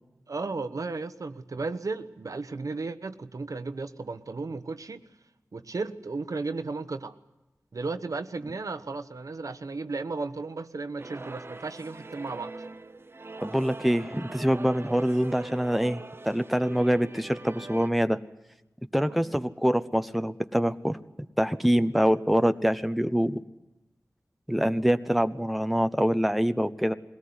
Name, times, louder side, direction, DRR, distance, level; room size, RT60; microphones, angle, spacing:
voice 1, 0.3-5.0 5.5-7.1 7.7-12.6 19.0-19.4, right 3 dB, 70° right, 10 dB, 1.1 m, -34 dB
sound 1, 11.0-17.9, right 2 dB, 40° right, 0.8 m, -43 dB
voice 2, 13.4-18.2 18.9-21.0 21.4-23.4 24.5-26.9, equal, ahead, 10 dB, 0.9 m, -25 dB
21.0 x 18.0 x 9.6 m, 0.98 s
wide cardioid pair, 55°, 6 cm